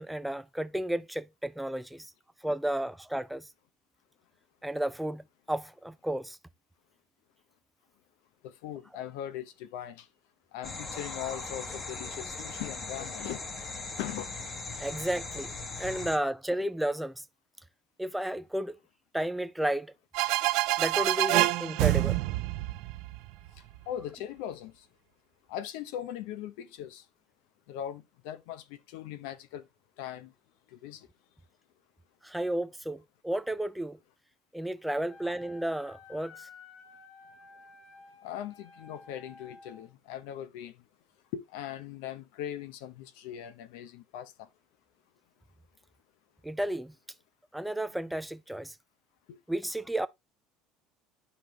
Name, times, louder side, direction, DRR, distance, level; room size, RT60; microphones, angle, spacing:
voice 1, 0.0-2.1 2.4-3.5 4.6-6.4 14.8-15.5 15.8-17.2 18.0-18.8 19.1-19.9 20.8-22.2 32.2-34.0 34.5-36.5 46.4-46.9 47.5-48.7 49.5-50.1, right 1 dB, 5° right, 0.5 m, -32 dB
voice 2, 8.4-10.1 10.5-13.4 14.0-14.3 16.0-16.1 23.9-24.9 25.5-27.0 27.7-29.6 30.0-30.3 30.7-31.1 38.2-40.8 41.3-44.5 49.3-49.4, left 11 dB, 80° left, 0.8 m, -40 dB
sound 1, 10.6-16.2, left 3 dB, 25° left, 1.3 m, -39 dB
sound 2, 20.1-23.8, right 18 dB, 70° right, 0.7 m, -27 dB
Wind instrument woodwind instrument, 35.0-39.8, left 4 dB, 55° left, 5.3 m, -53 dB
9.7 x 5.2 x 3.1 m
cardioid pair, 140°, 0 cm